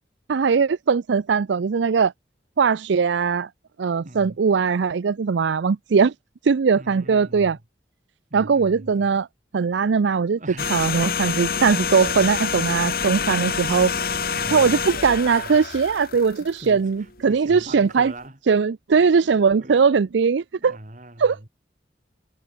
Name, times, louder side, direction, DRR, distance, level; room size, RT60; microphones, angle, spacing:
voice 1, 0.3-2.1 2.6-3.5 3.8-6.1 6.4-7.6 8.3-9.3 9.5-10.4 10.7-13.9 14.5-18.1 18.5-20.8 21.2-21.4, right 5 dB, 75° right, 0.4 m, -20 dB
voice 2, 4.0-4.4 6.8-7.6 8.3-9.2 10.4-10.7 14.2-14.9 16.1-18.4 19.6-19.8 20.6-21.5, right 1 dB, 40° right, 3.0 m, -42 dB
sound 1, 10.6-16.9 17.2-17.4, left 6 dB, 50° left, 2.2 m, -27 dB
head